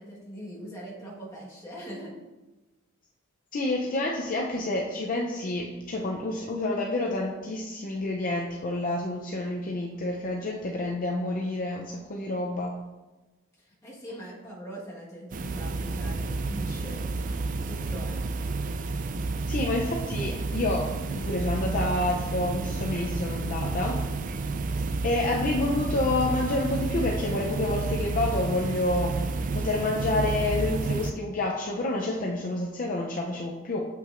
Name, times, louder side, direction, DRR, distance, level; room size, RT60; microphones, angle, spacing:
voice 1, 0.0-2.1 13.6-17.0 17.7-18.5, equal, 15° left, -5 dB, 1.4 m, -41 dB
voice 2, 3.5-12.7 19.5-24.0 24.7-33.8, left 2 dB, 40° left, -1 dB, 0.5 m, -29 dB
sound 1, 15.3-31.1, right 3 dB, 40° right, 0.3 m, -30 dB
7.4 x 5.7 x 2.5 m, 1.2 s
head